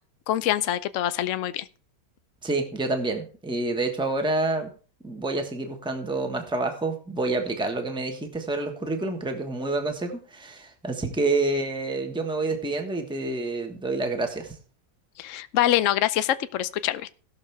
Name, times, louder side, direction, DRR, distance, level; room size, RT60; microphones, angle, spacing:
voice 1, 0.3-1.7 15.2-17.1, left 13 dB, 65° left, 12 dB, 0.8 m, -25 dB
voice 2, 2.4-4.7 5.0-14.5, right 2 dB, 5° right, 4 dB, 1.1 m, -28 dB
17.5 x 6.5 x 3.4 m, 0.39 s
omnidirectional pair, 1.9 m